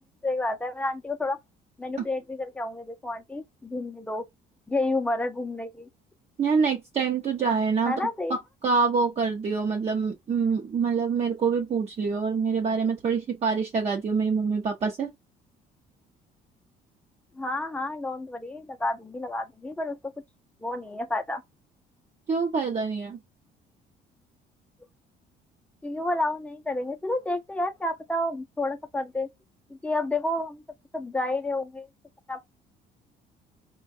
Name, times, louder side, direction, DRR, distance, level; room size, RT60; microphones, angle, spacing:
voice 1, 0.2-1.4 1.8-4.2 4.7-5.9 7.9-8.4 17.3-20.0 20.6-21.4 25.8-29.3 29.7-30.6 30.9-31.9 32.3-32.5, left 2 dB, 5° left, 0.6 m, -30 dB
voice 2, 6.4-8.4 8.6-15.1 22.3-23.2, right 5 dB, 40° right, 0.8 m, -26 dB
4.4 x 2.3 x 2.5 m
cardioid pair, 110°, 17 cm